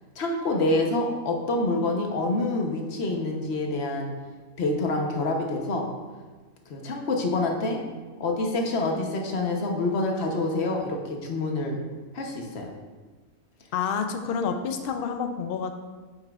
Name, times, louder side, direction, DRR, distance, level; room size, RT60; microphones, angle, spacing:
voice 1, 0.2-4.1 4.6-5.9 6.7-7.8 8.2-11.8 12.1-12.7, left 2 dB, 50° left, 2 dB, 1.0 m, -27 dB
voice 2, 13.7-15.7, left 6 dB, 85° left, 6 dB, 0.5 m, -28 dB
9.0 x 5.5 x 2.4 m, 1.3 s
omnidirectional pair, 1.5 m